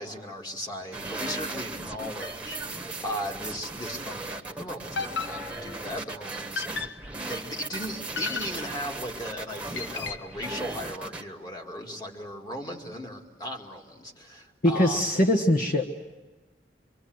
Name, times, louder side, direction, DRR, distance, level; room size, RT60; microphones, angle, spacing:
voice 1, 0.0-7.0 7.2-15.1, equal, 25° left, 2 dB, 2.4 m, -37 dB
sound 1, 0.9-11.2, right 2 dB, 5° right, 1.4 m, -37 dB
sound 2, 5.0-5.9 6.6-7.2 8.2-9.0 9.8-10.4, left 5 dB, 80° left, 0.9 m, -35 dB
voice 2, 14.6-15.9, left 1 dB, 50° left, 4 dB, 1.4 m, -22 dB
27.0 x 24.5 x 8.0 m, 1.2 s
head